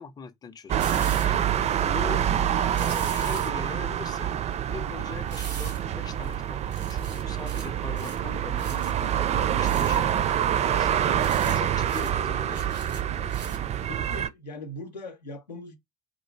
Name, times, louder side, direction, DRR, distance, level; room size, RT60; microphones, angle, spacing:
voice 1, 0.0-1.5 1.8-2.3 2.7-4.3 4.7-11.2 11.4-12.6, left 6 dB, 20° left, 0.5 m, -42 dB
sound 1, 0.7-14.3, right 10 dB, 35° right, 0.4 m, -26 dB
sound 2, 0.8-1.3 2.7-3.5 5.3-5.8 6.2-6.3 6.7-7.7 8.0-8.2 8.6-8.9 9.6-10.1 11.0-11.6 11.8-12.1 12.5-13.6 14.1-14.2, right 4 dB, 85° right, 0.7 m, -41 dB
voice 2, 13.9-15.8, left 2 dB, 85° left, 0.7 m, -40 dB
3.9 x 2.5 x 3.2 m
figure-of-eight pair, 55°, 21 cm